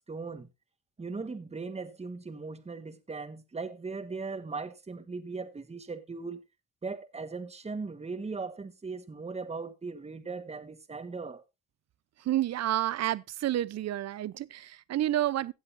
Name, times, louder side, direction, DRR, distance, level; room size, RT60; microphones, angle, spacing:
voice 1, 0.1-0.5 1.0-6.4 6.8-11.4, right 4 dB, 20° right, 1.4 m, -38 dB
voice 2, 12.2-15.5, right 13 dB, 60° right, 0.6 m, -30 dB
16.0 x 8.1 x 2.6 m
cardioid pair, 90°, 30 cm